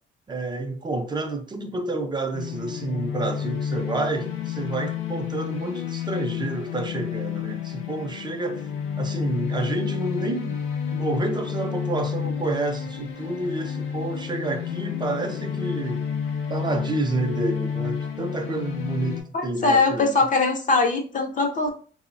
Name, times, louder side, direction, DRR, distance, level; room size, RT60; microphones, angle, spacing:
voice 1, 0.3-8.7 9.0-10.6 10.9-16.0 16.5-20.2, right 2 dB, 20° right, 0.4 m, -29 dB
sound 1, 2.3-19.2, left 7 dB, 85° left, 0.5 m, -30 dB
voice 2, 19.3-21.7, left 3 dB, 40° left, 0.5 m, -21 dB
3.1 x 2.0 x 2.5 m
cardioid pair, 90°, 20 cm